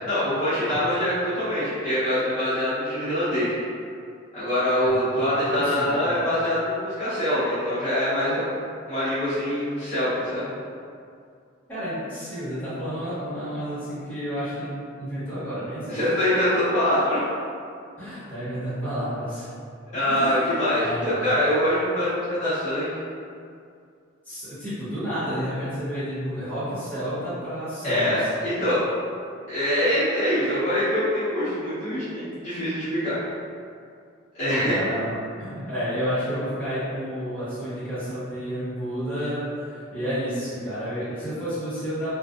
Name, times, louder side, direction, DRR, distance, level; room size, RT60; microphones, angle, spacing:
voice 1, 0.1-3.5 4.3-8.5 8.9-10.5 15.9-17.2 19.9-23.1 27.8-28.8 29.5-33.2 34.3-34.8, left 1 dB, 35° left, -15 dB, 0.8 m, -24 dB
voice 2, 5.6-6.0 9.8-9.9 11.7-16.0 18.0-19.5 20.0-20.5 20.8-21.3 24.2-28.3 34.4-42.1, equal, 10° left, -15 dB, 1.1 m, -31 dB
2.5 x 2.3 x 2.4 m, 2.3 s
head